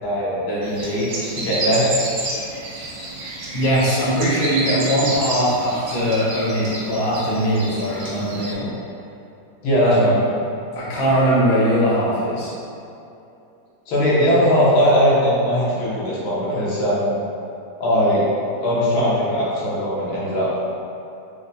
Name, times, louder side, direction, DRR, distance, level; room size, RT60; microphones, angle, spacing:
voice 1, 0.0-1.9 9.6-10.1 13.9-17.2 17.8-18.2 18.6-20.5, equal, 90° left, -8 dB, 1.7 m, -19 dB
sound 1, 0.6-8.5, right 2 dB, 85° right, 1.4 m, -30 dB
voice 2, 3.5-8.7 9.8-10.2 10.7-12.5, equal, 50° left, -8 dB, 0.8 m, -20 dB
4.5 x 2.1 x 2.6 m, 2.7 s
omnidirectional pair, 2.1 m